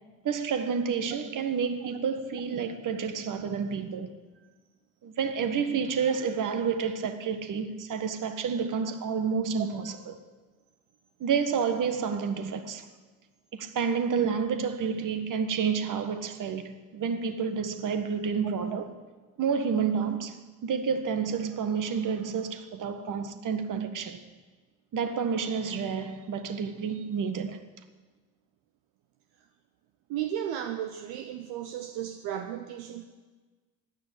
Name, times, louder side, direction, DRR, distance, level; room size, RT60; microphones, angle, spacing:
voice 1, 0.2-4.1 5.0-10.2 11.2-12.9 13.5-18.8 19.4-24.2 24.9-27.6, right 6 dB, 50° right, 1.6 m, -29 dB
voice 2, 30.1-33.1, right 10 dB, 70° right, 0.9 m, -34 dB
14.5 x 10.5 x 8.3 m
hypercardioid pair, 60°, 41 cm